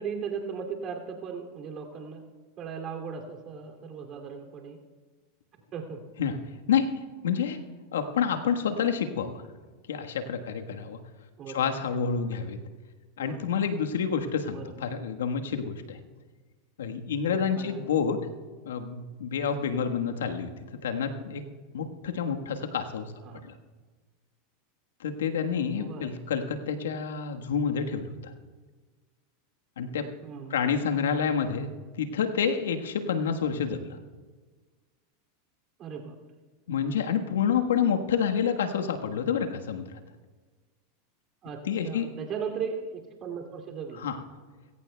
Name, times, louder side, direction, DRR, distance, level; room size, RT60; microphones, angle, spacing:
voice 1, 0.0-2.2 2.6-4.8 5.7-6.0 11.4-11.7 13.2-13.5 14.5-14.7 17.3-17.9 23.2-23.5 25.7-26.1 30.2-30.7 35.8-36.1 41.4-44.1, right 6 dB, 40° right, 2 dB, 2.6 m, -37 dB
voice 2, 7.2-7.6 7.9-9.4 9.9-11.0 11.5-12.6 13.2-16.0 16.8-18.2 18.6-20.5 20.8-21.4 21.7-23.1 23.4-23.5 25.0-28.3 29.8-30.1 30.5-31.7 32.0-34.0 36.7-40.0 41.7-42.1 44.0-44.2, left 7 dB, 80° left, 5 dB, 1.4 m, -28 dB
21.5 x 17.0 x 2.3 m, 1.4 s
hypercardioid pair, 100°, 0 cm